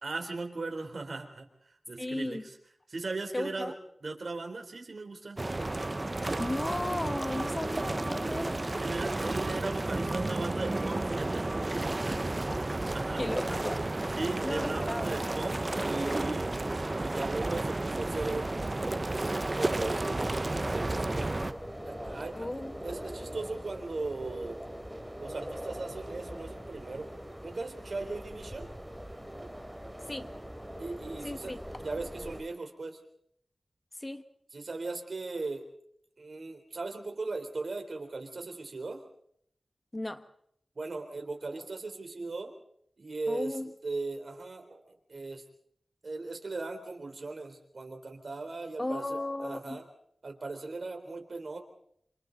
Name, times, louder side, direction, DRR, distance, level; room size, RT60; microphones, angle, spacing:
voice 1, 0.0-1.5 1.9-2.4 2.9-3.7 4.0-5.4 8.8-11.5 12.7-13.2 14.2-16.5 17.0-18.6 19.1-20.4 20.7-21.3 21.9-24.6 25.2-27.1 27.4-28.7 30.8-31.5 31.8-33.0 34.5-35.6 36.2-39.0 40.8-42.5 43.0-43.5 43.8-45.4 46.0-49.8 50.2-51.6, right 3 dB, 65° right, 4 dB, 3.8 m, -38 dB
voice 2, 2.0-2.5 3.3-3.7 6.4-8.6 12.5-12.6 13.2-13.9 14.4-15.1 22.3-22.8 30.1-30.3 31.2-31.6 34.0-34.2 39.9-40.2 43.3-43.7 48.8-49.8, left 1 dB, 25° left, 9 dB, 1.6 m, -35 dB
sound 1, 5.4-21.5, right 2 dB, 35° right, 0.8 m, -32 dB
sound 2, 19.7-32.4, equal, ahead, 3.4 m, -42 dB
27.5 x 26.5 x 4.1 m, 0.69 s
wide cardioid pair, 60°, 0 cm